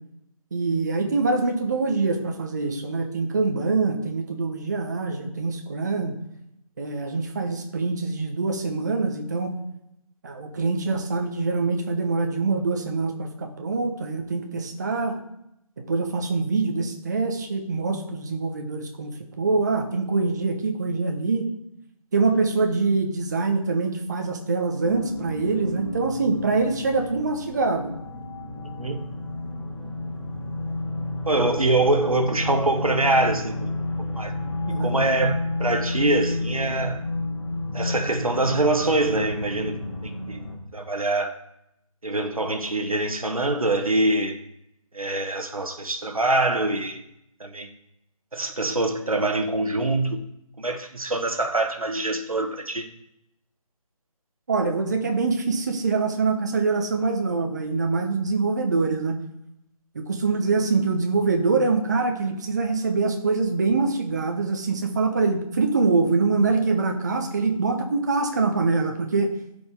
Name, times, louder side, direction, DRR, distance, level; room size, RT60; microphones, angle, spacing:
voice 1, 0.5-6.1 6.8-9.5 10.2-15.2 15.9-21.5 22.1-27.9 34.7-34.9 54.5-59.2 59.9-69.3, right 4 dB, 30° right, 4 dB, 0.9 m, -24 dB
sound 1, 24.8-40.6, left 2 dB, 55° left, 2.5 m, -31 dB
voice 2, 31.3-33.7 34.2-34.3 34.8-37.0 37.7-39.7 40.0-40.4 40.7-41.4 42.0-44.4 44.9-47.0 47.4-47.7 48.3-50.2 50.6-52.9, right 2 dB, 75° right, 6 dB, 1.3 m, -24 dB
12.0 x 5.2 x 3.5 m, 0.81 s
figure-of-eight pair, 155°, 19 cm